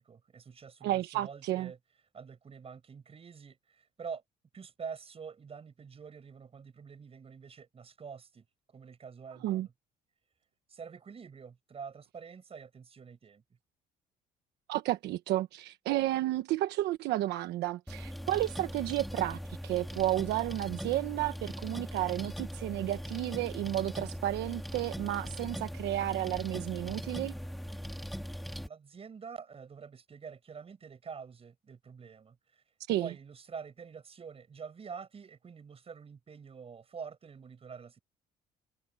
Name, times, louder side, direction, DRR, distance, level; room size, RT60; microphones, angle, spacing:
voice 1, 0.0-1.8 2.1-4.2 4.5-9.7 10.7-13.4 28.6-32.6 33.0-38.0, right 6 dB, 35° right, 6.5 m, -46 dB
voice 2, 0.8-1.7 9.4-9.7 14.7-27.3 32.9-33.1, right 15 dB, 85° right, 1.2 m, -32 dB
sound 1, 17.9-28.7, equal, ahead, 1.6 m, -40 dB
cardioid pair, 110°, 17 cm